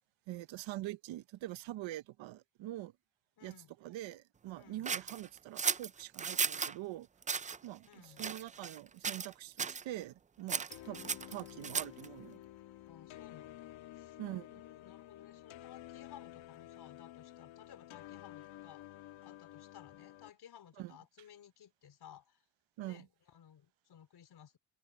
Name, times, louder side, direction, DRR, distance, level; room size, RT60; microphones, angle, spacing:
voice 1, 0.3-2.9 3.4-3.5 3.8-7.1 7.6-12.4 14.2-14.5 20.8-21.0 22.8-23.0, right 15 dB, 90° right, 0.9 m, -44 dB
voice 2, 3.4-3.7 4.6-4.9 7.9-8.3 12.9-18.9 19.2-22.5 22.8-24.6, left 9 dB, 55° left, 4.5 m, -58 dB
sound 1, 4.8-6.7 7.2-7.6 8.2-8.8 9.0-9.3 9.6-9.8 10.5-12.1, right 6 dB, 20° right, 0.3 m, -35 dB
sound 2, 10.7-20.3, left 14 dB, 90° left, 1.4 m, -52 dB
open air
cardioid pair, 140°, 45 cm